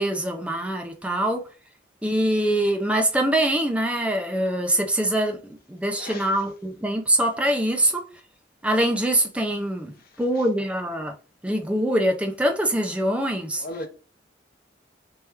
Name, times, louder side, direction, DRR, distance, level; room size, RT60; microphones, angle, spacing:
voice 1, 0.0-1.5 2.0-5.4 5.7-8.0 8.6-11.1 11.4-13.6, right 1 dB, 5° right, 0.6 m, -24 dB
voice 2, 6.0-6.4 10.3-10.4 13.6-13.9, left 1 dB, 55° left, 0.7 m, -36 dB
3.5 x 2.9 x 3.3 m
head